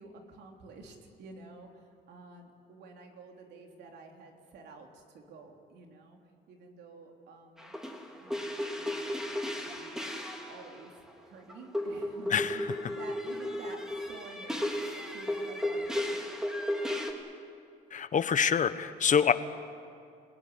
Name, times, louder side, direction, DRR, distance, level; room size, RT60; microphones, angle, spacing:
voice 1, 0.0-6.2 6.5-7.7 8.2-16.3, right 3 dB, 80° right, 2 dB, 3.5 m, -51 dB
sound 1, 7.6-10.8 11.1-11.2 11.5-17.1, left 1 dB, 5° right, 3.5 m, -34 dB
voice 2, 17.9-19.3, left 7 dB, 50° left, 12 dB, 1.2 m, -26 dB
27.5 x 17.0 x 9.7 m, 2.4 s
cardioid pair, 90°, 17 cm